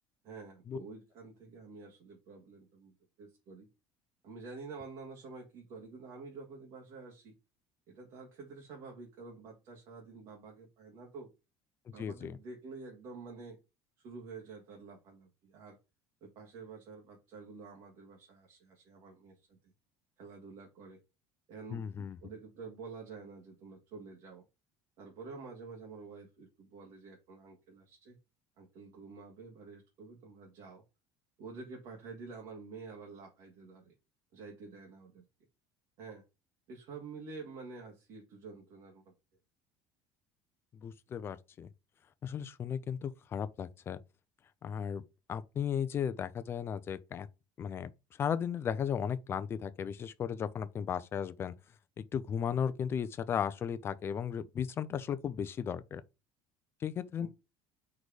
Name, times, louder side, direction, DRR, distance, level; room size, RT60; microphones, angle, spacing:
voice 1, 0.2-3.7 4.2-7.3 7.9-11.3 11.9-13.6 14.0-15.8 16.2-19.6 20.2-21.0 21.5-24.4 25.0-28.2 28.6-30.8 31.4-33.9 34.3-35.2 36.0-36.2 36.7-39.1 57.2-57.3, right 4 dB, 55° right, 1.9 m, -49 dB
voice 2, 12.0-12.4 21.7-22.2 40.7-41.7 42.2-44.0 44.6-45.0 45.3-47.3 47.6-47.9 48.2-51.5 52.1-56.0 56.8-57.3, left 8 dB, 25° left, 0.5 m, -35 dB
4.8 x 4.3 x 4.9 m
cardioid pair, 170°, 9 cm